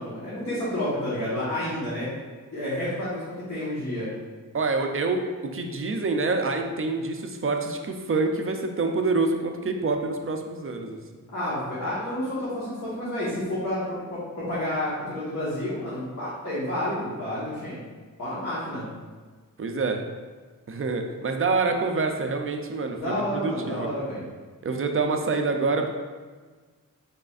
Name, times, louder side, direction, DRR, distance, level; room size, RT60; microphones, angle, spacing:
voice 1, 0.0-2.1 2.5-3.2 3.5-4.1 11.3-17.8 18.2-18.8 23.0-24.3, left 1 dB, 50° left, -11 dB, 1.3 m, -30 dB
voice 2, 4.5-5.2 5.5-11.0 19.6-20.1 20.7-23.9 24.6-25.9, right 3 dB, 40° right, 4 dB, 0.4 m, -26 dB
4.9 x 4.2 x 2.4 m, 1.4 s
wide cardioid pair, 140°, 35 cm